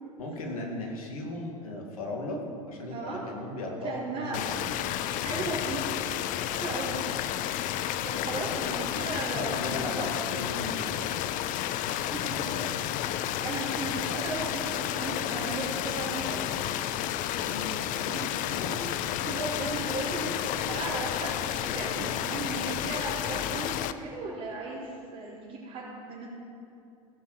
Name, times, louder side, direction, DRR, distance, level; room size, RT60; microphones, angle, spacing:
voice 1, 0.2-2.4 2.7-4.7 9.3-11.4 11.8-12.0 12.3-12.7 17.3-17.8 18.2-18.9, left 1 dB, 75° left, 1 dB, 2.3 m, -37 dB
voice 2, 2.9-3.2 3.8-4.4 5.2-5.8 6.5-7.0 8.0-9.7 10.0-10.3 12.1-12.5 13.4-16.5 18.1-18.3 18.7-18.8 19.2-26.3, right 3 dB, 45° right, -8 dB, 3.2 m, -36 dB
sound 1, 4.3-23.9, left 12 dB, 45° left, 0.5 m, -31 dB
16.5 x 6.3 x 6.6 m, 2.6 s
hypercardioid pair, 85°, 18 cm